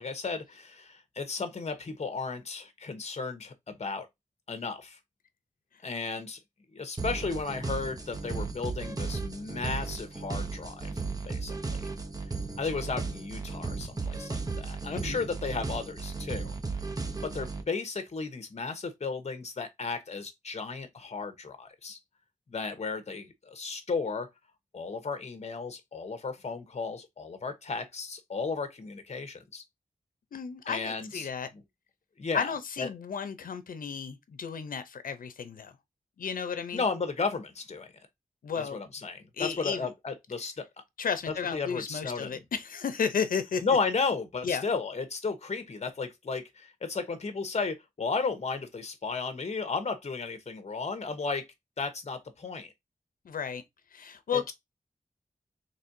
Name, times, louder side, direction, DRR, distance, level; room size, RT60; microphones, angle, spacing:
voice 1, 0.0-4.1 4.5-5.0 5.8-6.4 6.7-10.9 11.3-11.6 12.6-16.5 17.2-22.0 22.5-24.3 24.7-29.6 30.7-31.3 32.2-32.5 32.8-32.9 36.7-37.9 38.6-40.7 41.5-42.3 43.6-51.4 51.8-52.7, left 4 dB, 50° left, 0.9 m, -34 dB
sound 1, 7.0-17.6, right 4 dB, 25° right, 0.7 m, -35 dB
voice 2, 14.9-15.2 30.3-31.5 32.3-35.7 36.2-36.8 38.4-38.8 39.4-39.9 41.0-43.6 44.4-44.6 53.2-53.6 53.9-54.5, left 6 dB, 90° left, 0.6 m, -33 dB
4.1 x 3.3 x 2.6 m
wide cardioid pair, 80°, 14 cm